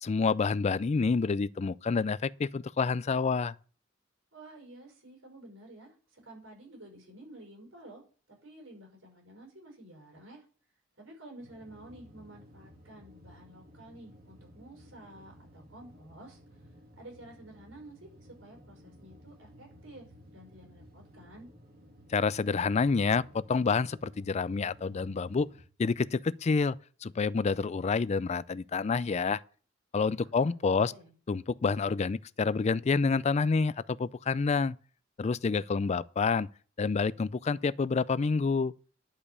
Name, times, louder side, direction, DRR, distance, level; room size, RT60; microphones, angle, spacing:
voice 1, 0.0-3.5 22.1-25.5 25.8-26.8 27.0-29.4 29.9-30.9 31.3-34.8 35.2-36.5 36.8-38.7, left 4 dB, 35° left, 0.4 m, -28 dB
voice 2, 4.3-8.0 8.3-10.4 11.0-16.4 17.0-18.1 18.4-20.1 20.3-21.5 30.2-30.3 30.6-31.1, right 1 dB, 85° right, 5.3 m, -51 dB
sound 1, 11.4-25.6, equal, 50° right, 2.3 m, -55 dB
11.0 x 5.1 x 6.7 m
head